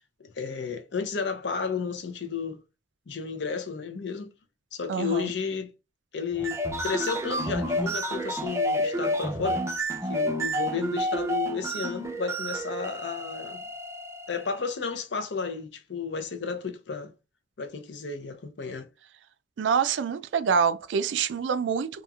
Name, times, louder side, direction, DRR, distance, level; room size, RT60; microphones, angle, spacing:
voice 1, 0.2-2.6 3.1-4.3 4.7-5.7 6.1-9.6 10.0-13.6 14.3-17.1 17.6-18.9, left 5 dB, 75° left, 0.6 m, -32 dB
voice 2, 4.9-5.3 19.6-22.0, right 6 dB, 85° right, 0.3 m, -26 dB
sound 1, 6.3-14.6, equal, 15° right, 0.4 m, -30 dB
2.9 x 2.4 x 2.3 m
head